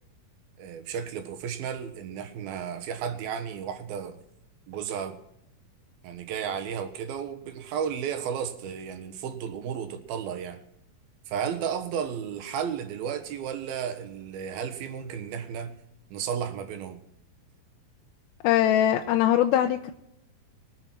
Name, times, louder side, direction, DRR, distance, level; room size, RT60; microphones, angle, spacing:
voice 1, 0.6-4.2 4.7-5.2 6.0-10.6 11.3-15.7 16.1-17.0, right 8 dB, 80° right, 3.2 m, -33 dB
voice 2, 18.4-19.9, left 11 dB, 90° left, 2.7 m, -22 dB
23.5 x 7.9 x 6.0 m
omnidirectional pair, 4.3 m